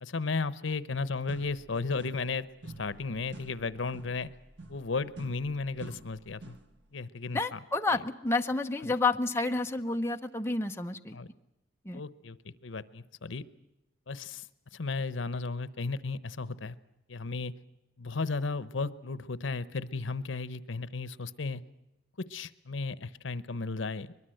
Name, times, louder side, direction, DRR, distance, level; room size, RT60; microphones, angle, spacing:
voice 1, 0.0-4.3 4.7-6.6 6.9-7.6 8.8-8.9 11.1-11.3 11.9-13.4 14.1-16.8 17.1-17.5 18.0-21.6 22.2-24.1, left 4 dB, 85° left, 16 dB, 0.9 m, -34 dB
sound 1, 0.9-1.0 1.3-2.4 2.6-6.8, right 2 dB, 65° right, 1.5 m, -49 dB
voice 2, 7.3-11.2 11.8-12.0, left 3 dB, 15° left, 5 dB, 0.8 m, -30 dB
23.0 x 21.5 x 7.8 m, 0.92 s
head